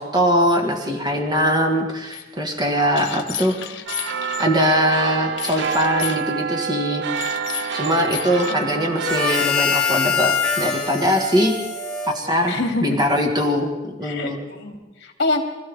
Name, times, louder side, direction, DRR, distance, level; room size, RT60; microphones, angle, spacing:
voice 1, 0.0-3.5 4.4-7.0 7.7-11.6 12.0-14.4, equal, 25° right, 2 dB, 1.6 m, -21 dB
sound 1, 2.1-2.2 2.9-4.5 5.4-6.2 7.1-8.5, left 9 dB, 85° left, 1.1 m, -32 dB
voice 2, 2.9-3.7 8.5-8.9 12.5-13.0 14.0-15.4, left 2 dB, 65° left, 2 dB, 2.6 m, -27 dB
sound 2, 3.9-9.5, right 7 dB, 65° right, 0.5 m, -27 dB
Harmonica, 9.0-12.8, left 5 dB, 5° left, 1.9 m, -24 dB
25.0 x 15.0 x 3.5 m, 1.1 s
head